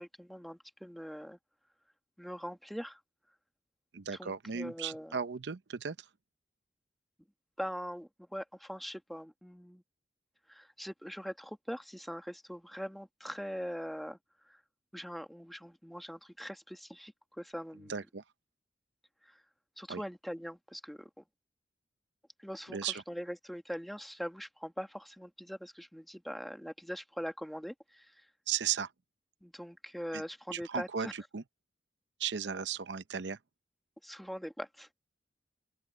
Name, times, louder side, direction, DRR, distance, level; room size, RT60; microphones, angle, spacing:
voice 1, 0.0-1.4 2.2-3.0 4.2-5.2 7.6-9.8 10.5-14.2 14.5-14.6 14.9-17.9 19.8-21.2 22.4-28.1 29.4-31.1 34.0-34.9, equal, ahead, 1.6 m, -42 dB
voice 2, 3.9-6.0 17.9-18.2 19.9-20.0 22.7-23.0 28.5-28.9 30.1-30.2 30.5-31.4 32.2-33.4, right 7 dB, 85° right, 0.7 m, -36 dB
open air
head